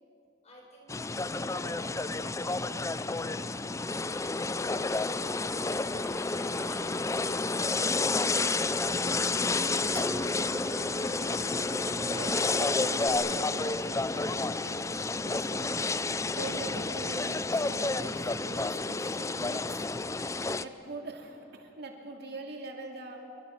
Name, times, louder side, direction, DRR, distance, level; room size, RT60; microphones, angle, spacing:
voice 1, 0.4-3.3 3.7-10.4 13.7-13.8, equal, 35° left, -2 dB, 7.2 m, -53 dB
sound 1, 0.9-20.6, left 3 dB, 15° left, 0.5 m, -30 dB
Engine, 5.9-13.1, equal, 10° right, 1.7 m, -42 dB
voice 2, 12.1-15.8 16.4-19.8 20.6-23.2, right 2 dB, 60° right, 2 dB, 2.7 m, -43 dB
28.5 x 23.5 x 6.0 m, 2.7 s
head